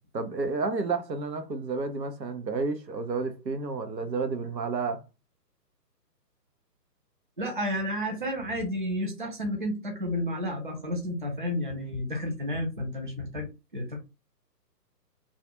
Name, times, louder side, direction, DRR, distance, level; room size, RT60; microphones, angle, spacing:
voice 1, 0.1-5.0, right 4 dB, 85° right, 0.8 m, -31 dB
voice 2, 7.4-14.0, left 1 dB, 35° right, 0.4 m, -31 dB
2.4 x 2.2 x 2.8 m
figure-of-eight pair, 140°, 49 cm